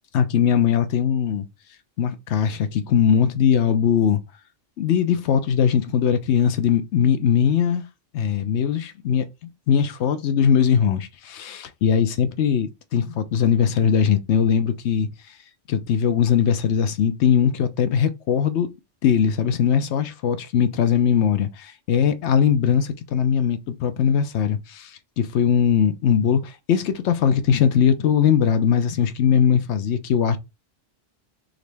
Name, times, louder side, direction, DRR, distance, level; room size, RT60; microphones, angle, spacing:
voice 1, 0.1-1.5 2.0-4.2 4.8-7.8 8.1-15.1 15.7-18.7 19.0-30.4, left 8 dB, 75° left, 0.9 m, -20 dB
3.8 x 3.1 x 3.3 m
omnidirectional pair, 1.2 m